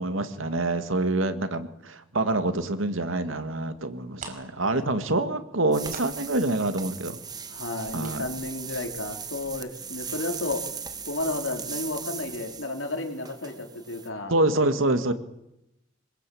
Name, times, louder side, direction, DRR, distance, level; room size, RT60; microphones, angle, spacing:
voice 1, 0.0-7.2 7.9-8.2 14.3-15.1, right 2 dB, 90° right, 9 dB, 2.1 m, -26 dB
sound 1, 3.9-4.0 4.1-9.7 10.0-10.1 10.5-10.7 11.0-11.1, right 3 dB, 45° right, 4.9 m, -46 dB
voice 2, 4.6-5.1 7.5-10.6 11.1-14.3, left 2 dB, 80° left, 4 dB, 3.9 m, -32 dB
sound 2, 5.7-14.1, right 6 dB, 20° right, 1.5 m, -38 dB
25.5 x 21.0 x 8.7 m, 0.86 s
head